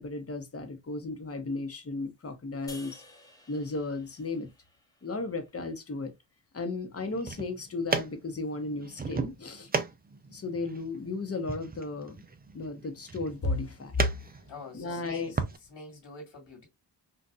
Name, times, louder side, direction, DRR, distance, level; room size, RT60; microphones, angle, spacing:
voice 1, 0.0-3.0 3.5-4.5 5.0-6.1 6.5-9.7 10.3-12.2 12.5-14.1 14.7-15.3, left 3 dB, 35° left, 1.0 m, -34 dB
sound 1, 2.7-6.0, left 2 dB, 10° left, 1.1 m, -53 dB
sound 2, 7.0-15.6, right 4 dB, 20° right, 0.5 m, -36 dB
voice 2, 14.4-15.4 15.7-16.7, left 4 dB, 70° left, 1.8 m, -44 dB
4.0 x 2.5 x 2.3 m
cardioid pair, 85°, 43 cm